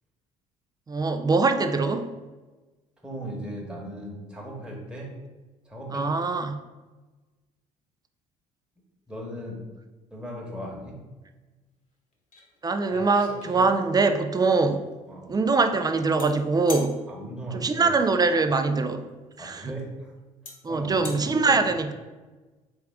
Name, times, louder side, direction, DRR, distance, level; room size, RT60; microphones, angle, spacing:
voice 1, 0.9-2.1 5.9-6.6 12.6-14.8 15.3-17.0 17.5-19.0 19.4-19.7 20.6-21.9, right 3 dB, 20° right, 8 dB, 0.4 m, -23 dB
voice 2, 3.0-5.2 5.6-6.1 9.1-9.6 10.1-11.0 15.1-15.4 17.1-18.0 19.4-20.1 20.7-21.6, right 1 dB, 5° right, -3 dB, 1.2 m, -37 dB
sound 1, 12.3-12.4 12.8-14.2 16.2-16.3 16.7-16.9 18.8-18.9 19.8-19.9 20.5-20.6 20.9-21.2, left 3 dB, 50° left, 1.2 m, -38 dB
3.5 x 3.4 x 3.5 m, 1.2 s
hypercardioid pair, 60°, 17 cm